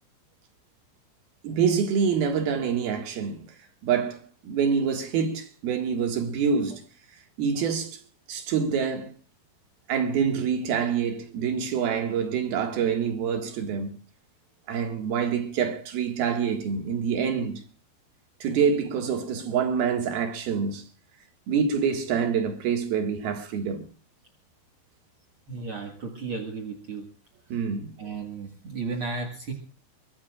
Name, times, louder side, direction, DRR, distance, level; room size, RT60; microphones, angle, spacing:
voice 1, 1.4-3.4 3.8-6.8 7.4-8.0 8.3-9.1 9.9-13.9 14.7-17.6 18.4-20.8 21.5-23.8 27.5-27.9, right 6 dB, 60° right, 3.3 m, -26 dB
voice 2, 25.5-27.1 28.0-29.5, right 4 dB, 85° right, 1.1 m, -34 dB
23.0 x 21.0 x 2.4 m
omnidirectional pair, 5.5 m